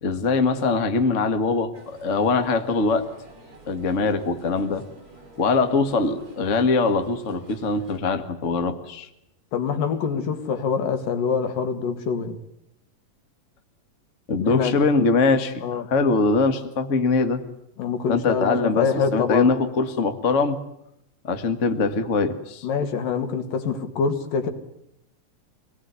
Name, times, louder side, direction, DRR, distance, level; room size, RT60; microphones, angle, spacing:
voice 1, 0.0-3.1 3.7-4.8 5.4-9.1 14.3-17.4 18.1-18.8 19.1-20.6 21.2-22.7, left 4 dB, 30° left, 1.4 m, -22 dB
sound 1, 1.7-8.0, right 2 dB, 25° right, 7.2 m, -49 dB
voice 2, 9.5-12.4 14.4-14.8 15.6-15.9 17.8-19.5 22.6-24.5, left 6 dB, 80° left, 3.8 m, -25 dB
26.5 x 19.0 x 9.7 m
omnidirectional pair, 3.9 m